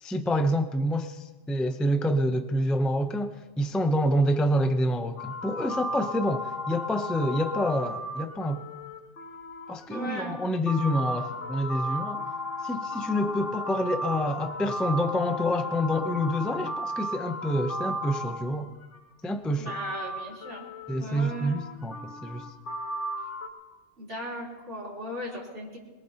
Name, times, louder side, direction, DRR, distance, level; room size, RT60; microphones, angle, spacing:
voice 1, 0.0-8.6 9.7-12.2 12.6-18.7 19.2-19.8 20.9-22.5, equal, ahead, 7 dB, 0.3 m, -27 dB
sound 1, 5.2-19.0 19.7-23.5, left 1 dB, 55° left, 1.6 m, -35 dB
voice 2, 9.9-10.4 19.6-20.6 20.9-21.6 24.0-25.8, equal, 55° right, -5 dB, 4.1 m, -37 dB
22.5 x 21.5 x 2.9 m, 1.3 s
omnidirectional pair, 1.5 m